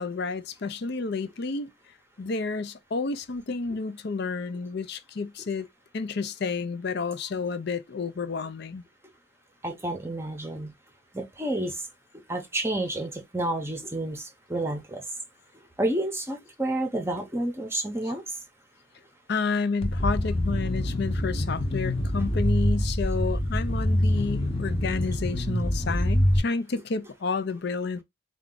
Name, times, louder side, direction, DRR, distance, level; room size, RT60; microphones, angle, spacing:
voice 1, 0.0-1.7 2.2-5.7 5.9-8.8 19.3-28.0, left 4 dB, 50° left, 0.5 m, -30 dB
voice 2, 9.6-10.7 11.1-11.8 12.3-15.0 15.8-18.2, right 1 dB, 10° right, 0.8 m, -30 dB
sound 1, 19.8-26.4, left 1 dB, 25° left, 0.8 m, -25 dB
4.6 x 2.4 x 3.8 m
head